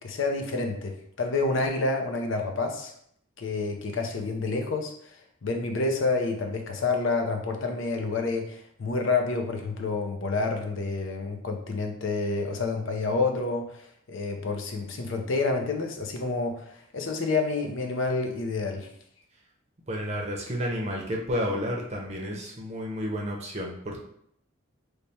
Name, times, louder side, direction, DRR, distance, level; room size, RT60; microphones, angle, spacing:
voice 1, 0.0-2.9 3.4-18.9, left 3 dB, 65° left, 3 dB, 0.5 m, -29 dB
voice 2, 19.9-24.0, equal, 30° right, -1 dB, 0.7 m, -31 dB
3.3 x 2.2 x 4.1 m, 0.68 s
head